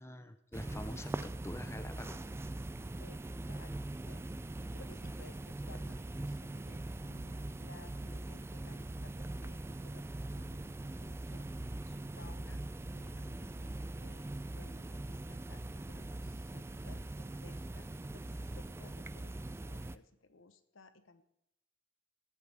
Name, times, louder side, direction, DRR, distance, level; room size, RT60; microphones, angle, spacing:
voice 1, 0.0-2.2 2.6-2.9, left 1 dB, 15° left, 9 dB, 0.6 m, -47 dB
sound 1, 0.5-20.0, right 2 dB, 15° right, 0.3 m, -42 dB
voice 2, 4.7-12.6 12.9-19.3 19.6-21.2, left 3 dB, 85° left, 10 dB, 1.0 m, -59 dB
18.5 x 8.5 x 3.4 m, 0.81 s
head